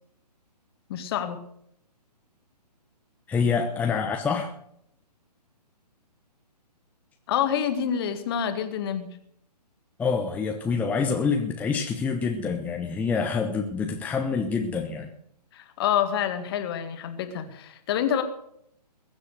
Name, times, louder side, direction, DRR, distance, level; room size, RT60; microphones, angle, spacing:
voice 1, 0.9-1.4 7.3-9.1 15.5-18.2, left 9 dB, 35° left, 8 dB, 1.9 m, -27 dB
voice 2, 3.3-4.5 10.0-15.1, left 5 dB, 5° left, 2 dB, 0.9 m, -26 dB
21.0 x 7.6 x 6.7 m, 0.73 s
figure-of-eight pair, 130°, 21 cm